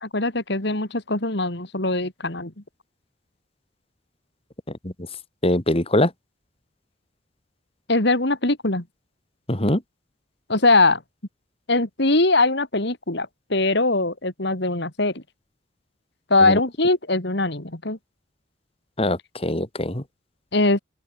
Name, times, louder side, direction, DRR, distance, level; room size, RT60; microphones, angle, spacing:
voice 1, 0.0-2.5 7.9-8.8 10.5-11.0 11.7-15.2 16.3-18.0 20.5-20.8, left 2 dB, 60° left, 2.9 m, -21 dB
voice 2, 5.4-6.1 9.5-9.8 16.4-16.6 19.0-20.0, left 1 dB, 30° left, 2.5 m, -22 dB
open air
head